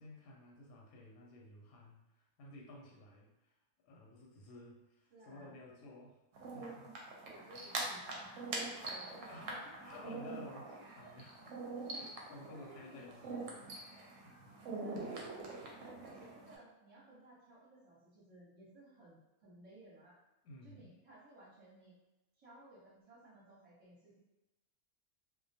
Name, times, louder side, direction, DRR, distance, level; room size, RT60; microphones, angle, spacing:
voice 1, 0.0-3.5 3.8-6.2 6.5-6.9 9.3-14.6 20.4-20.9, left 2 dB, 85° left, -2 dB, 1.0 m, -55 dB
voice 2, 5.1-5.6 7.2-9.7 9.9-10.0 11.0-11.2 12.5-13.5 14.5-20.1 20.6-22.0 22.3-24.2, right 1 dB, 30° right, -9 dB, 0.9 m, -58 dB
sound 1, 6.4-16.6, right 3 dB, 70° right, 0.9 m, -44 dB
2.4 x 2.2 x 2.6 m, 1.0 s
omnidirectional pair, 1.5 m